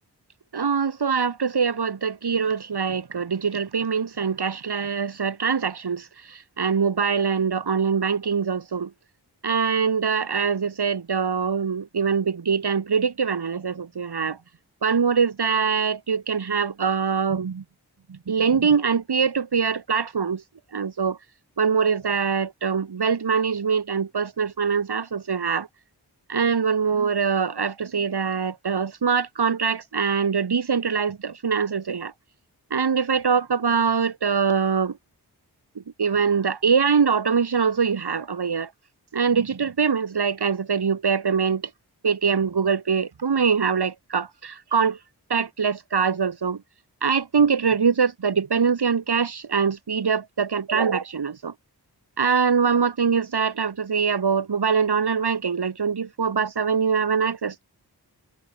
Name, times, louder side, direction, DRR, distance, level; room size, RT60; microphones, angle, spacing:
voice 1, 0.5-8.9 9.4-14.4 14.8-17.6 18.1-20.4 20.7-21.2 21.6-25.7 26.3-32.1 32.7-34.9 36.0-38.7 39.1-41.6 42.0-45.0 45.3-46.6 47.0-51.5 52.2-57.6, right 6 dB, 75° right, 1.6 m, -23 dB
wide cardioid pair, 50°, 40 cm